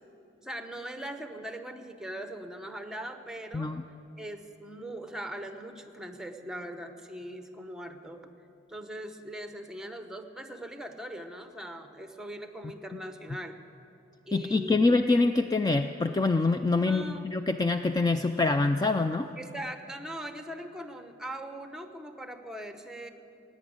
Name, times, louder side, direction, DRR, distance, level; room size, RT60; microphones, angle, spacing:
voice 1, 0.4-3.7 4.2-8.3 8.7-13.6 14.2-15.0 16.9-17.4 19.4-23.1, right 1 dB, 5° right, 6 dB, 0.8 m, -40 dB
voice 2, 14.3-19.3, left 3 dB, 20° left, 7 dB, 0.3 m, -25 dB
17.0 x 9.3 x 8.7 m, 2.8 s
head